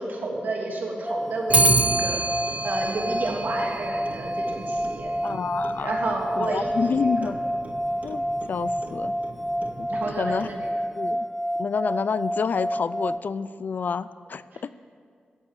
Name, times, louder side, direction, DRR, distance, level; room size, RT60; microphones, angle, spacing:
voice 1, 0.0-2.2 2.6-5.1 5.8-7.3 9.9-10.7 14.5-14.6, right 2 dB, 75° right, -1 dB, 2.9 m, -31 dB
sound 1, 1.1-13.2, equal, ahead, 0.5 m, -29 dB
Clock, 1.5-10.9, right 2 dB, 45° right, 1.0 m, -29 dB
voice 2, 5.2-5.9 6.3-7.4 8.0-9.2 9.8-9.9 10.2-10.5 11.0-11.3 11.6-14.7, left 5 dB, 65° left, 16 dB, 0.4 m, -28 dB
14.5 x 8.0 x 8.5 m, 2.1 s
cardioid pair, 80°, 3 cm